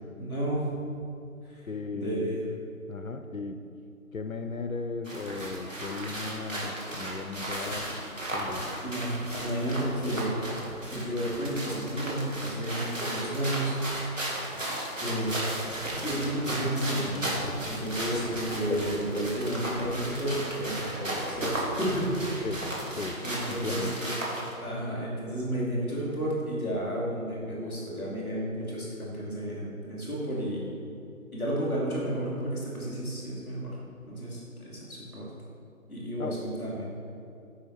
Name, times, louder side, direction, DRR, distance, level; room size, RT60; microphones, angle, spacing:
voice 1, 0.2-0.7 1.5-1.7 1.9-2.4 8.8-9.1 9.4-10.4 10.8-13.7 14.1-14.3 15.0-15.3 16.0-22.5 23.2-24.1 24.6-30.7 31.3-33.8 34.1-35.3 35.9-36.9, right 1 dB, 5° left, -18 dB, 1.8 m, -32 dB
voice 2, 1.7-2.4 2.9-3.6 4.1-8.0 8.3-8.7 18.7-19.2 22.4-22.7 23.0-23.2 23.5-24.0 36.2-36.4, left 4 dB, 65° left, 7 dB, 0.6 m, -36 dB
sound 1, 5.1-24.5, right 1 dB, 60° right, 2.1 m, -35 dB
9.8 x 5.7 x 4.3 m, 2.6 s
figure-of-eight pair, 175°, 44 cm